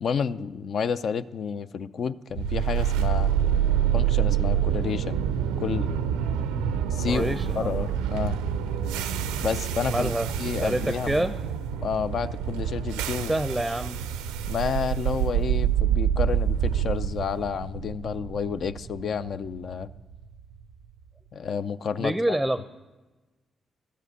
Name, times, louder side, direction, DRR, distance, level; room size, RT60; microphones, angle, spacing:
voice 1, 0.0-3.3 3.9-5.2 5.6-5.9 6.9-8.4 9.4-10.1 10.4-11.2 11.8-13.3 14.5-19.9 21.3-22.1, left 6 dB, 60° left, 13 dB, 0.4 m, -30 dB
sound 1, 2.4-20.4, right 9 dB, 85° right, 0.4 m, -27 dB
voice 2, 7.1-7.7 9.9-10.3 10.6-11.4 13.3-14.0 22.0-22.6, right 1 dB, 5° right, 11 dB, 0.5 m, -27 dB
13.0 x 4.9 x 8.0 m, 1.2 s
hypercardioid pair, 40°, 0 cm